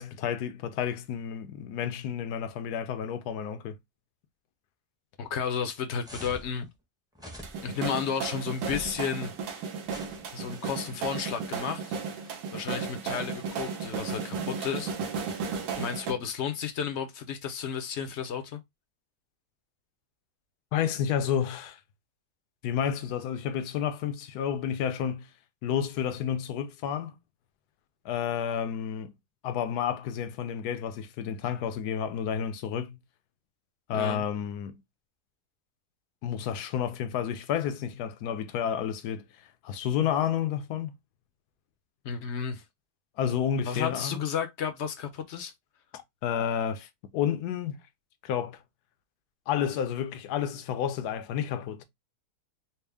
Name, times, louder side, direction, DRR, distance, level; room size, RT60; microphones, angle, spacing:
voice 1, 0.0-3.8 20.7-21.8 22.6-25.3 25.6-27.2 28.0-29.1 29.4-33.0 33.9-34.8 36.2-39.3 39.6-41.0 43.2-44.2 45.9-47.8 48.2-48.6 49.5-51.8, left 8 dB, 80° left, 1.2 m, -30 dB
voice 2, 5.2-6.7 7.6-9.3 10.3-12.0 12.2-14.9 15.2-15.3 15.8-18.6 33.9-34.2 42.0-42.6 43.6-45.5, left 7 dB, 60° left, 0.8 m, -32 dB
sound 1, 6.0-6.5 7.2-7.8 8.6-9.1 9.9-10.7, equal, 5° right, 0.7 m, -45 dB
sound 2, 7.4-16.1, right 6 dB, 80° right, 1.4 m, -35 dB
4.4 x 2.1 x 3.3 m
omnidirectional pair, 1.7 m